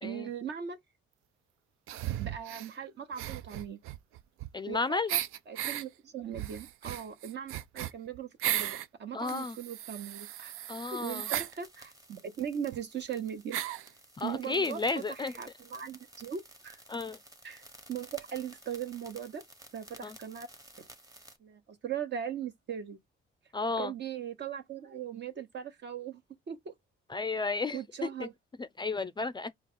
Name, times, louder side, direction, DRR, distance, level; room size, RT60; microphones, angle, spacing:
voice 1, 0.0-0.8 2.2-3.8 4.7-5.2 5.5-10.5 10.9-13.6 14.2-14.8 15.1-16.8 17.4-19.4 19.7-20.5 20.8-20.9 21.4-23.0 23.8-26.2 26.5-26.7 27.7-28.3, right 8 dB, 55° right, 1.0 m, -39 dB
sound 1, 1.9-2.7 3.1-4.7 5.1-5.8 6.3-8.9 9.2-11.5 12.4-12.5 12.7-12.8 13.5-13.9, right 13 dB, 85° right, 0.4 m, -36 dB
voice 2, 4.5-5.1 9.1-9.6 10.7-11.3 14.2-15.3 16.9-17.2 20.0-20.2 23.5-23.9 27.1-28.3 28.6-29.5, left 3 dB, 20° left, 0.4 m, -33 dB
sound 2, 11.4-21.4, right 1 dB, 15° right, 1.1 m, -54 dB
4.5 x 2.3 x 3.6 m
cardioid pair, 90°, 21 cm